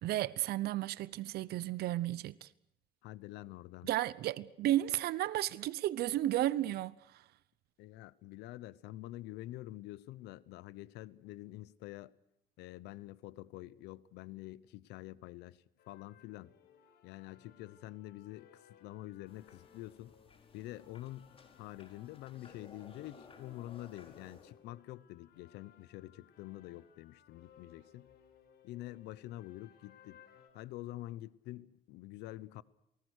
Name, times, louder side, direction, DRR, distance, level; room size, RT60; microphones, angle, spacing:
voice 1, 0.0-2.5 3.8-7.2, right 14 dB, 70° right, 0.9 m, -33 dB
voice 2, 3.0-3.9 7.8-12.1 12.6-16.5 17.0-20.1 20.5-28.1 28.6-30.2 30.5-32.6, left 16 dB, 90° left, 1.0 m, -47 dB
sound 1, 15.8-30.5, left 8 dB, 70° left, 4.8 m, -64 dB
sound 2, 19.3-24.5, left 4 dB, 35° left, 4.8 m, -58 dB
28.0 x 19.5 x 6.5 m
cardioid pair, 110°, 17 cm